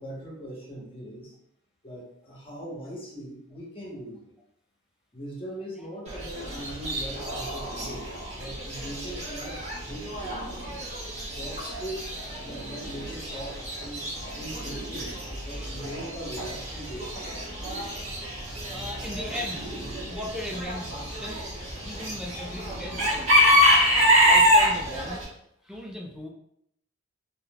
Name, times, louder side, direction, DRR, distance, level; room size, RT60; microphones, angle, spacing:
voice 1, 0.0-1.3 1.8-4.3 5.1-10.5 11.3-12.1 12.4-15.2 15.4-17.4, right 1 dB, 25° left, -4 dB, 1.0 m, -40 dB
Chicken rooster / Bird, 6.1-25.2, equal, 35° right, 1.1 m, -27 dB
voice 2, 15.4-15.8 18.7-19.7 20.1-21.5 21.8-23.6 24.2-25.2 25.6-26.3, left 1 dB, 5° right, 0 dB, 0.4 m, -38 dB
3.7 x 2.8 x 2.2 m, 0.73 s
head